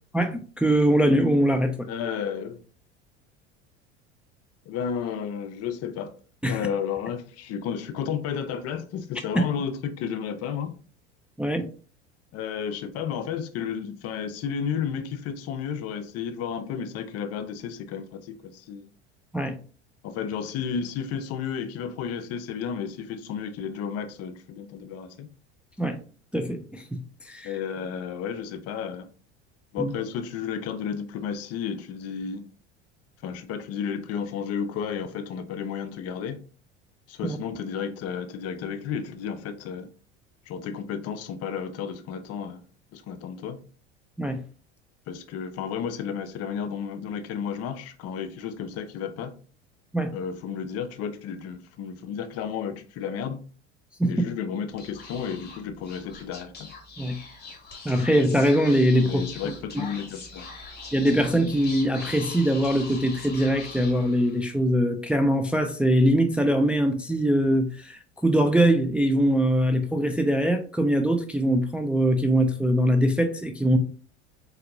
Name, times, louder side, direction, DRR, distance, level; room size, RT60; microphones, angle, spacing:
voice 1, 0.1-1.9 6.4-6.6 9.4-9.5 11.4-11.7 19.3-19.6 25.8-26.0 26.3-27.0 27.3-27.5 29.8-29.9 44.2-44.4 49.9-50.1 54.0-54.3 57.0-57.2 57.8-59.2 59.8-59.9 60.9-73.8, equal, 5° right, 0.4 m, -22 dB
voice 2, 1.9-2.6 4.7-6.1 6.5-10.7 12.3-18.9 20.0-25.3 27.4-29.1 29.7-32.4 33.2-36.4 37.1-39.9 40.5-42.6 42.9-43.6 45.1-49.3 50.1-53.4 54.1-56.7 59.0-60.5, left 7 dB, 45° left, 0.7 m, -32 dB
Speech / Whispering, 54.7-64.5, left 3 dB, 30° left, 1.6 m, -42 dB
4.2 x 4.0 x 2.6 m
hypercardioid pair, 75°, 34 cm